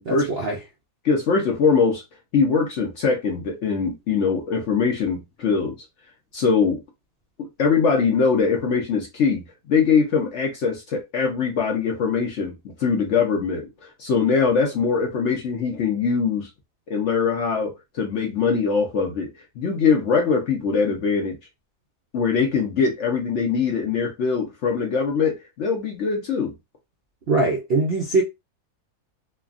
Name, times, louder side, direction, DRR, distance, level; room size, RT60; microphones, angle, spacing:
voice 1, 0.1-0.6 27.3-28.2, right 3 dB, 60° right, 0.6 m, -22 dB
voice 2, 1.0-2.0 2.3-5.7 6.3-6.8 7.4-13.7 14.0-16.5 16.9-19.3 19.6-21.4 22.1-26.5, left 5 dB, 65° left, 0.8 m, -22 dB
3.2 x 2.2 x 2.4 m
omnidirectional pair, 1.7 m